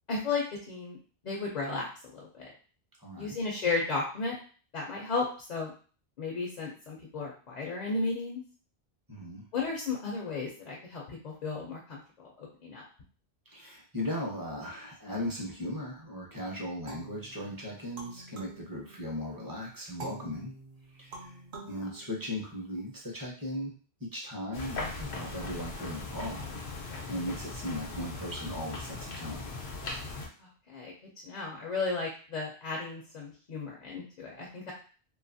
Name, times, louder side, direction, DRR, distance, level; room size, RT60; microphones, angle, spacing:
voice 1, 0.1-1.0 1.2-2.5 3.2-4.4 4.7-5.7 6.2-8.4 9.5-12.8 21.7-21.8 30.4-30.9 31.2-34.7, left 3 dB, 50° left, -2 dB, 0.6 m, -34 dB
voice 2, 3.0-3.4 9.1-9.5 13.5-20.5 21.0-21.3 21.7-23.7 24.0-29.5, left 1 dB, 25° right, -2 dB, 0.6 m, -38 dB
sound 1, 16.9-19.4 20.0-22.8, right 2 dB, 55° right, 0.8 m, -47 dB
sound 2, 24.5-30.3, left 3 dB, 85° left, 0.9 m, -39 dB
2.7 x 2.3 x 2.6 m, 0.40 s
omnidirectional pair, 1.1 m